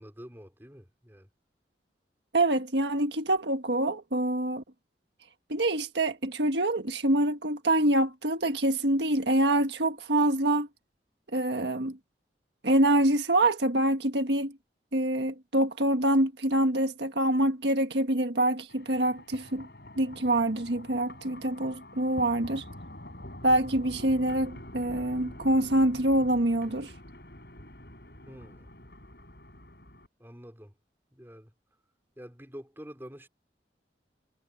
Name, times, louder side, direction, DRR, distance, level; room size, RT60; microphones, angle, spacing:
voice 1, 0.0-1.3 28.3-28.7 30.2-30.8 31.1-31.5 32.2-33.3, equal, 10° right, 4.5 m, -47 dB
voice 2, 2.3-4.6 5.5-10.7 11.3-12.0 12.6-14.6 14.9-19.7 20.0-22.6 23.4-26.9, right 1 dB, 75° right, 1.5 m, -25 dB
sound 1, 18.7-30.1, left 1 dB, 60° left, 7.2 m, -46 dB
head